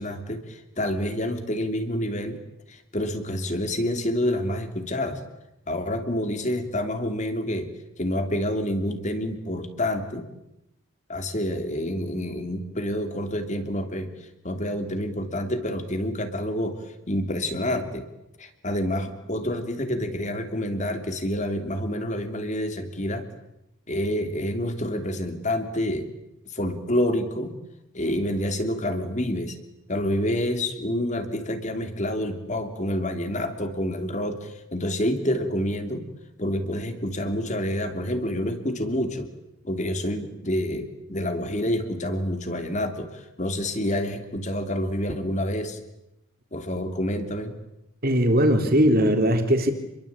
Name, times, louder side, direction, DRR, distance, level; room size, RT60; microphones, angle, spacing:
voice 1, 0.0-2.4 2.7-5.2 5.7-7.7 8.0-10.3 11.1-14.1 14.4-18.1 18.4-23.2 23.9-26.1 26.5-27.6 27.9-29.6 29.9-36.0 36.4-39.3 39.6-45.8 46.5-47.5, left 1 dB, 35° left, 7 dB, 3.1 m, -28 dB
voice 2, 48.0-49.7, equal, 45° right, 5 dB, 3.9 m, -19 dB
29.0 x 22.5 x 8.8 m, 0.89 s
head